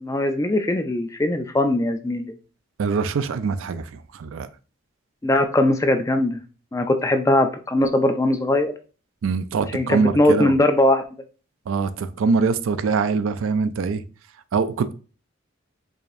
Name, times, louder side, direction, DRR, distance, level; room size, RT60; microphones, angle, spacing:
voice 1, 0.0-2.2 5.2-6.4 6.7-8.7 9.7-11.0, left 1 dB, 15° left, 0.3 m, -20 dB
voice 2, 2.8-3.8 4.1-4.5 9.2-10.5 11.7-14.0 14.5-14.9, right 5 dB, 75° right, 0.4 m, -23 dB
4.8 x 2.6 x 2.5 m
head